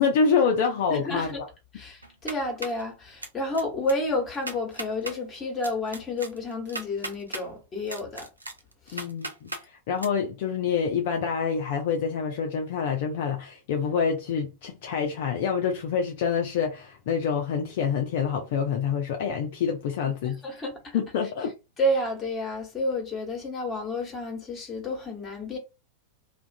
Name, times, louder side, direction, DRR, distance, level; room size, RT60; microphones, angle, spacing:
voice 1, 0.0-1.3 8.9-9.5 9.9-20.4 20.9-21.5, left 6 dB, 50° left, 0.4 m, -26 dB
voice 2, 0.9-1.4 1.7-8.3 8.9-9.0 20.2-21.0 21.8-25.6, left 1 dB, 20° left, 1.0 m, -30 dB
sound 1, 2.0-2.8 3.2-3.6 3.9-4.0 4.3-5.2 5.6-7.4 7.9-9.6 10.0-10.1, right 2 dB, 80° right, 0.4 m, -36 dB
2.3 x 2.1 x 2.6 m
figure-of-eight pair, 90°, 0 cm